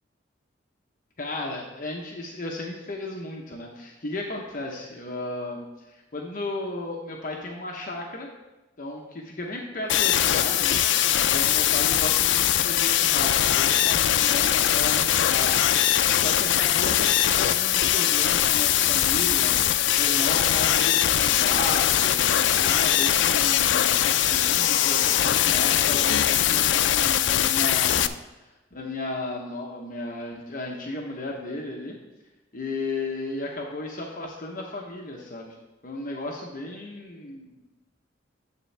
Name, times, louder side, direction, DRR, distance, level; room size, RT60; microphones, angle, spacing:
voice 1, 1.2-8.3 8.8-10.8 11.3-15.6 15.9-19.6 19.9-32.0 32.5-35.6 35.8-37.6, left 2 dB, 45° left, -1 dB, 0.9 m, -34 dB
sound 1, 9.9-28.1, left 11 dB, 70° left, 0.3 m, -21 dB
9.6 x 7.5 x 3.3 m, 1.1 s
head